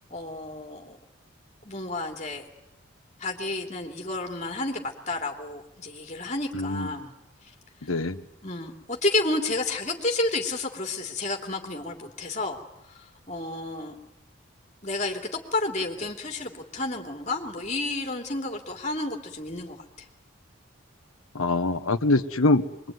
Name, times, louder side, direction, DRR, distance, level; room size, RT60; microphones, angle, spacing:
voice 1, 0.1-1.0 1.6-2.4 3.2-7.1 7.8-8.0 8.4-12.6 12.9-13.9 14.8-20.1, left 2 dB, 35° left, 2 dB, 3.0 m, -31 dB
voice 2, 6.5-6.9 7.8-8.2 21.3-22.9, left 2 dB, 85° left, 9 dB, 1.3 m, -24 dB
25.5 x 23.0 x 9.4 m, 0.84 s
head